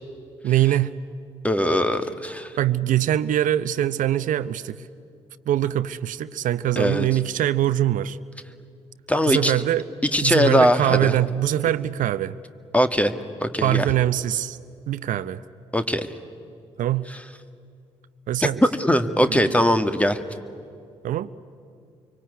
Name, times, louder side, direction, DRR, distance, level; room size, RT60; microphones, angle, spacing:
voice 1, 0.4-0.9 2.6-4.9 5.5-8.2 9.2-9.9 10.2-12.4 13.6-14.6 14.9-15.4 16.8-17.1 18.3-18.6 19.2-19.6 21.0-21.4, right 12 dB, 60° right, 14 dB, 0.7 m, -23 dB
voice 2, 1.4-2.5 6.8-7.1 9.1-9.5 10.1-11.1 12.7-13.1 13.4-13.9 15.7-16.1 18.4-18.5 18.8-20.2, equal, 10° left, 9 dB, 1.9 m, -20 dB
25.5 x 24.0 x 9.6 m, 2.4 s
hypercardioid pair, 40°, 15 cm